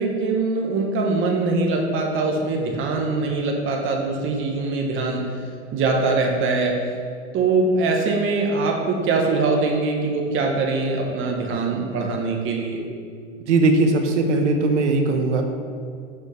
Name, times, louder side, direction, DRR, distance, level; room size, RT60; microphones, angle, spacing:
voice 1, 0.0-5.2 5.7-6.8 7.3-12.8, right 3 dB, 35° right, 1 dB, 1.4 m, -22 dB
voice 2, 13.5-15.4, right 3 dB, 75° right, 5 dB, 1.1 m, -19 dB
6.5 x 5.2 x 5.0 m, 2.2 s
hypercardioid pair, 110°, 35 cm